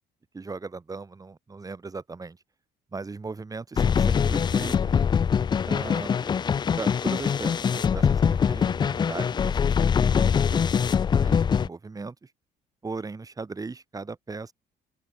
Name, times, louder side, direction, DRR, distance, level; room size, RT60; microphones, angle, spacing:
voice 1, 0.3-2.4 2.9-5.0 5.7-6.1 6.7-10.9 11.2-12.3 12.8-14.5, right 4 dB, 20° right, 2.8 m, -38 dB
sound 1, 3.8-11.7, left 7 dB, 25° left, 0.4 m, -23 dB
open air
cardioid pair, 110°, 17 cm